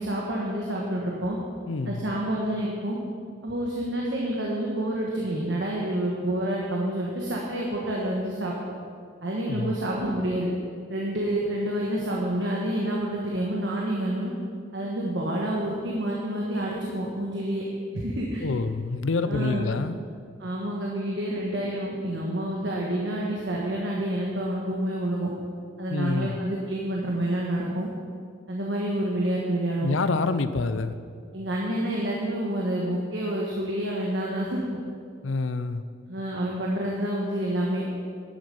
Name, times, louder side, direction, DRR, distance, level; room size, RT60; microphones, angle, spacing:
voice 1, 0.0-1.4 1.8-3.0 3.4-8.5 9.2-10.5 10.9-14.3 14.7-17.6 17.9-18.4 19.2-19.7 20.4-25.3 25.8-27.9 28.5-30.0 31.3-34.6 36.1-37.8, right 1 dB, 65° right, -3 dB, 1.3 m, -28 dB
voice 2, 1.7-2.1 9.5-9.7 18.4-20.0 25.9-26.4 29.8-30.9 35.2-35.8, left 3 dB, 80° left, 12 dB, 0.6 m, -27 dB
11.5 x 8.0 x 5.4 m, 2.2 s
head